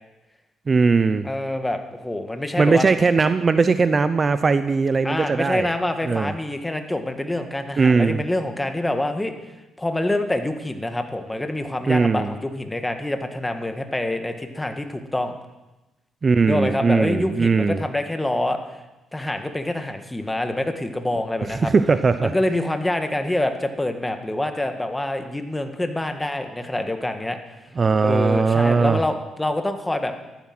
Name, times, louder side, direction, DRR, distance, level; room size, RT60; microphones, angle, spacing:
voice 1, 0.7-1.3 2.6-5.7 6.1-6.3 7.8-8.2 11.9-12.3 16.2-17.8 21.5-22.3 27.8-29.0, right 4 dB, 35° right, 12 dB, 0.7 m, -19 dB
voice 2, 1.2-2.9 5.0-9.3 9.8-15.3 16.5-18.6 19.1-21.7 22.2-27.4 28.0-30.1, left 1 dB, 10° left, 6 dB, 1.7 m, -26 dB
14.0 x 13.5 x 6.1 m, 1.0 s
cardioid pair, 90°, 0 cm